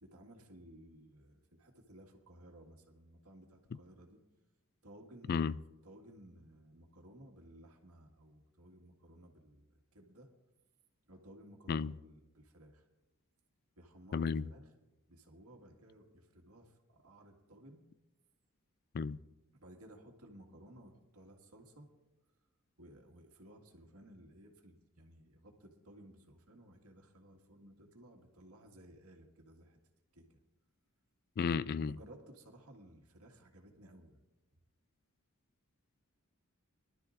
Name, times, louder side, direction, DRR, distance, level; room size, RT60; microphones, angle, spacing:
voice 1, 0.0-4.2 4.8-5.5 5.8-10.3 11.1-12.9 13.8-14.7 15.1-17.8 19.5-21.9 22.8-29.8 30.1-30.4 31.8-34.2, right 1 dB, 90° right, 1.9 m, -57 dB
voice 2, 14.1-14.5 18.9-19.2 31.4-32.0, left 5 dB, 45° left, 0.3 m, -33 dB
23.0 x 12.0 x 2.6 m
head